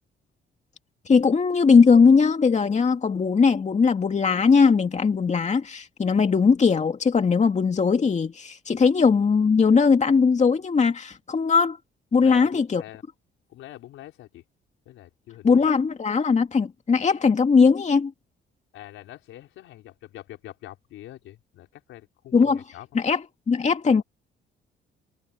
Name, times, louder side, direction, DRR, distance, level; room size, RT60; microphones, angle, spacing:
voice 1, 1.1-11.8 12.1-12.8 15.4-18.1 22.3-22.6 22.9-23.2 23.5-24.0, left 5 dB, 35° left, 2.2 m, -19 dB
voice 2, 12.1-13.0 13.5-14.4 14.8-15.7 18.7-22.9 23.9-24.0, left 14 dB, 90° left, 4.9 m, -44 dB
cardioid pair, 90°, 20 cm